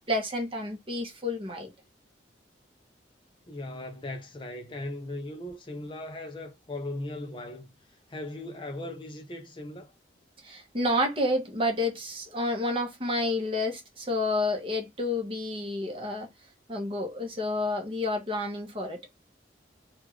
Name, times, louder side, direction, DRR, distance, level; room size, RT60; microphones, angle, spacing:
voice 1, 0.1-1.7 10.4-16.3 16.7-19.0, left 1 dB, 30° right, 1.1 m, -29 dB
voice 2, 3.5-7.7 8.1-9.9, left 1 dB, 25° left, 0.5 m, -38 dB
3.6 x 2.4 x 3.0 m
head